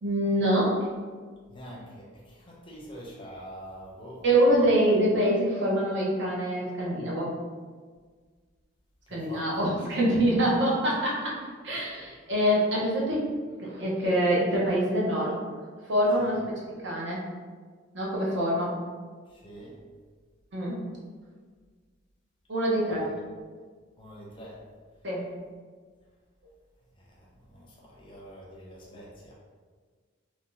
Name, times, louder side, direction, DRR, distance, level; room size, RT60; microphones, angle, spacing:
voice 1, 0.0-0.9 4.2-7.3 9.1-11.4 11.6-13.3 13.6-15.3 15.9-16.4 16.8-17.3 17.9-18.8 20.5-20.8 22.5-23.0 25.0-25.3, right 1 dB, 60° right, -4 dB, 0.8 m, -25 dB
voice 2, 1.5-4.2 4.5-4.8 9.1-9.7 11.8-12.1 16.2-16.4 19.3-19.8 22.9-23.1 24.0-24.6 27.0-29.3, equal, 25° left, -3 dB, 0.6 m, -45 dB
2.7 x 2.5 x 3.7 m, 1.6 s
head